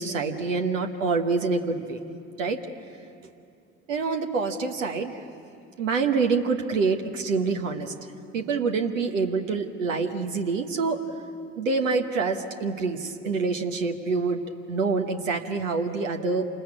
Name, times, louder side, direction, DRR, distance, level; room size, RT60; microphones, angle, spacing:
voice 1, 0.0-2.0 2.4-2.6 3.9-5.2 5.8-7.9 8.3-11.0 11.6-14.4 14.7-16.5, right 4 dB, 90° right, 5 dB, 1.2 m, -26 dB
27.5 x 20.5 x 8.6 m, 2.5 s
hypercardioid pair, 50°, 37 cm